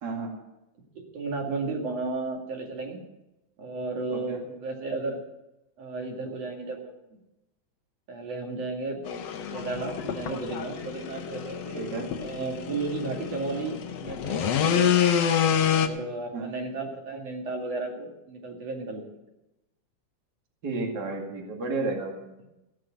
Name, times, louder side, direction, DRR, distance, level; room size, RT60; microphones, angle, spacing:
voice 1, 0.0-0.3 4.1-4.4 11.8-12.1 16.3-16.5 20.6-22.5, right 3 dB, 35° right, 1 dB, 2.5 m, -32 dB
voice 2, 0.9-3.0 3.6-5.2 5.8-6.8 7.1-7.2 8.1-9.2 9.5-11.8 12.2-14.9 15.7-19.2, right 3 dB, 55° right, 0 dB, 3.3 m, -33 dB
sound 1, 9.1-15.9, left 8 dB, 65° left, 1.8 m, -27 dB
16.5 x 6.6 x 8.9 m, 0.94 s
omnidirectional pair, 3.6 m